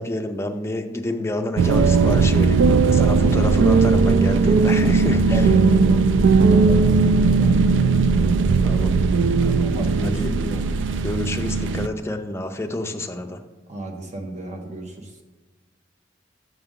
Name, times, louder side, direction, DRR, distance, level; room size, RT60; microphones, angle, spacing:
voice 1, 0.0-5.5 8.6-9.1 9.4-9.7 10.0-10.3 11.0-13.4, left 1 dB, 15° left, 5 dB, 0.5 m, -29 dB
sound 1, 1.6-11.9, right 4 dB, 80° right, 0.3 m, -18 dB
voice 2, 2.9-3.8 5.2-7.7 9.5-10.7 13.7-14.9, right 2 dB, 40° right, 3 dB, 1.0 m, -31 dB
6.8 x 6.3 x 3.7 m, 1.3 s
head